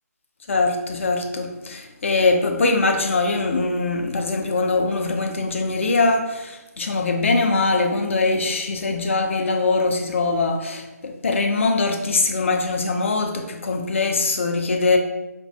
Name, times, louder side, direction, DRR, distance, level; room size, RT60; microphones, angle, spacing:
voice 1, 0.5-15.0, left 3 dB, 45° left, 0.4 m, -22 dB
4.2 x 2.2 x 2.6 m
figure-of-eight pair, 150°, 9 cm